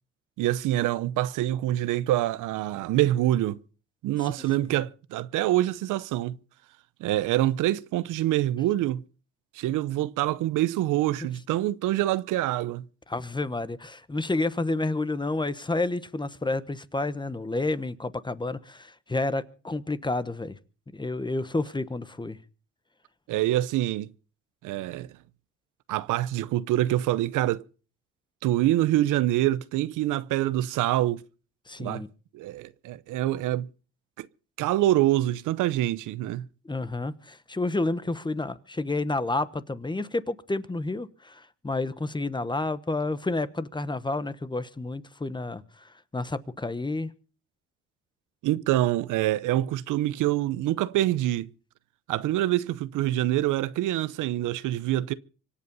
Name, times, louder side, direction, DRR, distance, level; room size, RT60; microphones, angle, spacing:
voice 1, 0.4-3.6 4.0-6.4 7.0-9.0 9.5-12.8 23.3-24.1 24.6-25.1 25.9-27.6 28.4-31.2 31.8-32.0 32.3-33.7 34.2-34.3 34.6-36.5 48.4-51.5 52.1-55.1, right 14 dB, 90° right, 0.8 m, -25 dB
voice 2, 13.1-20.6 20.9-22.4 31.7-32.1 36.6-47.1, left 2 dB, 15° left, 1.1 m, -30 dB
25.0 x 8.4 x 5.4 m
cardioid pair, 90°, 30 cm